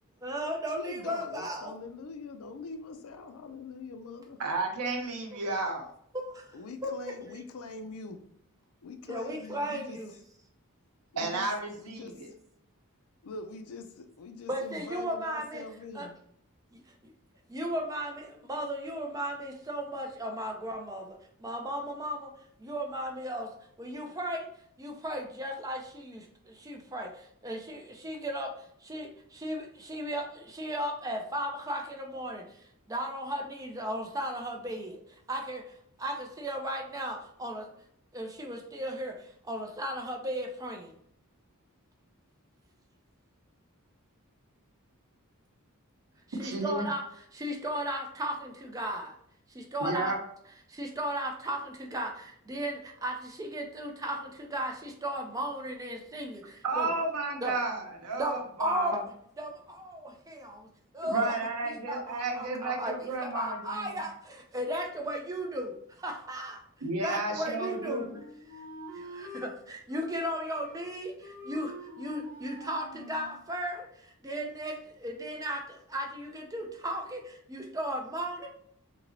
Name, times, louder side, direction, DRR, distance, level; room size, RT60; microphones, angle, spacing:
voice 1, 0.2-1.7 5.3-5.4 6.1-6.6 6.8-6.9 7.3-7.4 9.1-10.1 14.5-15.6 15.9-16.1 16.7-17.1 17.5-22.3 22.6-23.5 23.8-24.5 24.8-28.5 28.8-32.4 32.9-35.0 35.3-35.6 36.0-37.7 38.1-40.9 46.4-47.0 47.3-49.1 49.5-50.1 50.7-56.9 57.4-57.5 58.2-59.0 59.4-60.7 60.9-61.4 61.6-66.6 67.0-68.2 68.9-78.5, equal, 15° right, 2 dB, 0.4 m, -35 dB
voice 2, 0.8-4.4 6.5-8.2 8.8-10.0 11.1-11.5 11.8-12.3 13.2-16.2, left 3 dB, 70° left, 7 dB, 0.4 m, -43 dB
voice 3, 4.4-5.9 11.2-12.3 46.3-46.9 49.8-50.2 56.6-58.9 61.0-64.0 66.8-68.2, right 2 dB, 90° right, 2 dB, 0.7 m, -32 dB
Wind instrument woodwind instrument, 67.4-69.5 69.9-70.9 71.2-73.4, right 1 dB, 45° right, 1.5 m, -46 dB
3.1 x 2.8 x 2.6 m, 0.68 s
head